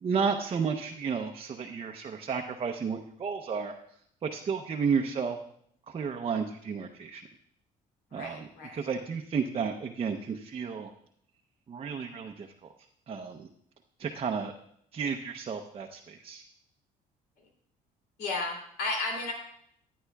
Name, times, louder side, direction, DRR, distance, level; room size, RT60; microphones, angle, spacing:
voice 1, 0.0-3.7 4.2-5.4 5.9-7.2 8.1-10.9 11.7-12.5 13.1-13.5 14.0-14.5 14.9-16.4, right 6 dB, 35° right, 3 dB, 0.7 m, -32 dB
voice 2, 8.1-8.7 18.2-19.3, left 3 dB, 80° left, 0 dB, 3.0 m, -33 dB
14.5 x 9.4 x 2.3 m, 0.68 s
cardioid pair, 110°, 17 cm